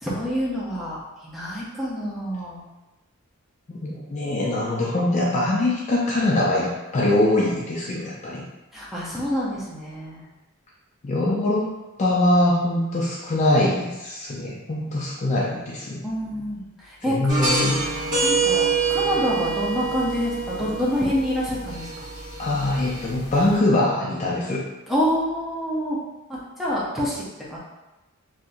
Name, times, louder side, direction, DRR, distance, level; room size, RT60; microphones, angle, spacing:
voice 1, 0.0-2.7 8.7-10.2 16.0-17.2 18.2-22.1 24.9-26.0 26.3-27.6, equal, ahead, -7 dB, 0.7 m, -27 dB
voice 2, 3.7-8.4 11.0-11.7 12.0-16.0 17.0-17.8 22.4-24.6, left 1 dB, 30° left, -4 dB, 0.4 m, -23 dB
sound 1, 17.3-23.6, right 4 dB, 35° right, 1.3 m, -26 dB
3.5 x 2.8 x 2.5 m, 1.1 s
head